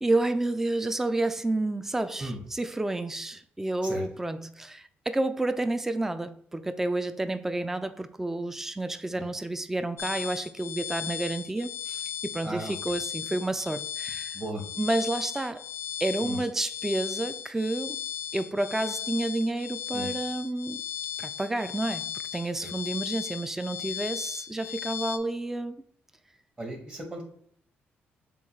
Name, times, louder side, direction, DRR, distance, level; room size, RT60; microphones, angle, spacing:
voice 1, 0.0-14.4 14.8-15.6 16.0-18.0 18.3-20.8 21.2-25.8, right 2 dB, 10° right, 0.3 m, -30 dB
sound 1, 10.0-25.2, left 10 dB, 70° left, 0.4 m, -37 dB
voice 2, 12.4-12.7 14.3-14.6 16.2-16.4 19.9-20.1 22.6-22.7 26.6-27.2, right 1 dB, 25° right, 1.3 m, -36 dB
6.7 x 2.3 x 3.1 m
cardioid pair, 95°, 4 cm